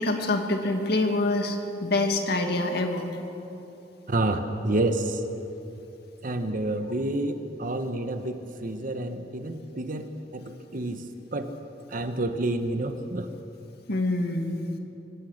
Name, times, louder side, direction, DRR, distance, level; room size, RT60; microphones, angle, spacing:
voice 1, 0.0-3.1 13.9-14.7, left 2 dB, 60° left, 4 dB, 2.1 m, -26 dB
voice 2, 4.1-5.2 6.2-11.1 11.3-11.5 11.9-13.3, right 2 dB, 50° right, 7 dB, 1.1 m, -29 dB
24.0 x 17.5 x 6.5 m, 3.0 s
head